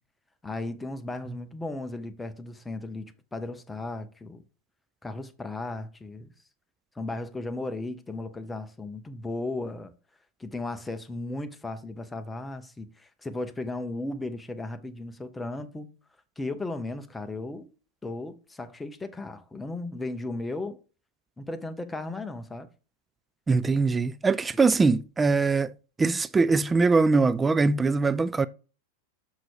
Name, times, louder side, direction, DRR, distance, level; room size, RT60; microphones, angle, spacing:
voice 1, 0.4-4.4 5.0-6.3 7.0-9.9 10.4-15.9 16.4-17.7 18.0-20.8 21.4-22.7, left 2 dB, 10° left, 0.8 m, -35 dB
voice 2, 23.5-25.7 26.0-28.5, right 4 dB, 15° right, 0.3 m, -22 dB
6.0 x 5.6 x 4.8 m
figure-of-eight pair, 90°, 0 cm